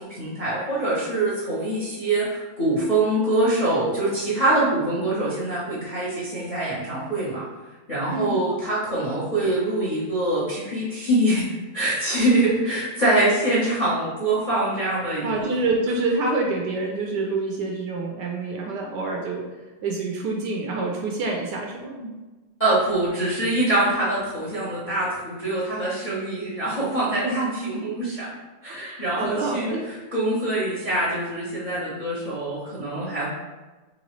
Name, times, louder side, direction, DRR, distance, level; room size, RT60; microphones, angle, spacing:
voice 1, 0.0-7.5 7.9-15.6 22.6-28.3 28.6-33.3, right 1 dB, 35° left, -8 dB, 0.7 m, -24 dB
voice 2, 8.1-8.5 15.2-19.4 19.8-22.2 27.1-27.3 27.8-27.9 28.7-29.8, right 3 dB, 75° right, 0 dB, 1.1 m, -27 dB
3.9 x 3.1 x 3.1 m, 1.2 s
omnidirectional pair, 2.1 m